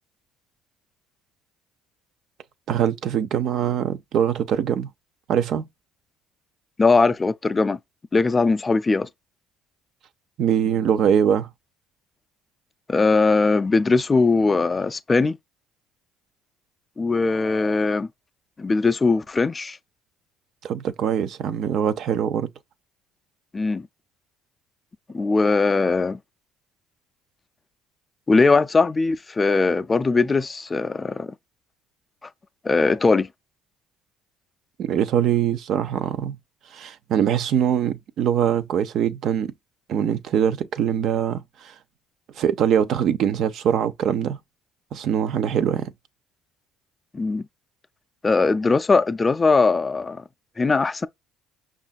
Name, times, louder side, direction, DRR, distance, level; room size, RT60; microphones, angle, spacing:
voice 1, 2.7-4.9 5.3-5.7 10.4-11.5 20.6-22.5 34.8-36.4 36.7-39.5 39.9-41.7 42.4-44.4 44.9-45.9, right 9 dB, 60° right, 0.5 m, -23 dB
voice 2, 6.8-7.8 8.1-9.1 12.9-15.4 17.0-18.1 18.6-19.8 23.5-23.9 25.1-26.2 28.3-31.3 32.6-33.3 47.1-47.5 48.2-50.2 50.6-51.1, left 3 dB, 25° left, 0.4 m, -20 dB
5.4 x 2.4 x 2.3 m
supercardioid pair, 85°, 0 cm